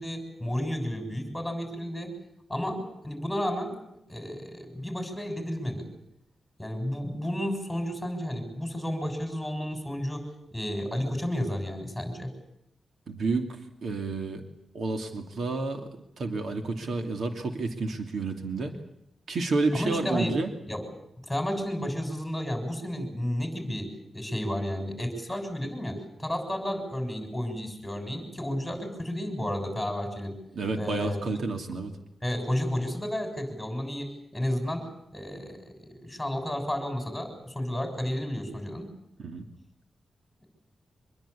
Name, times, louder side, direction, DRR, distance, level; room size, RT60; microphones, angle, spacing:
voice 1, 0.0-2.1 2.5-3.8 4.1-5.9 6.6-10.2 10.5-12.3 19.7-20.4 20.7-20.8 21.2-30.4 30.7-31.2 32.2-38.9, equal, ahead, 5 dB, 6.9 m, -32 dB
voice 2, 13.1-13.5 13.8-14.4 14.7-15.9 16.2-18.7 19.3-20.5 30.5-31.9 39.2-39.4, right 3 dB, 60° right, 5 dB, 2.8 m, -30 dB
25.0 x 21.5 x 8.6 m, 0.80 s
wide cardioid pair, 150°, 0 cm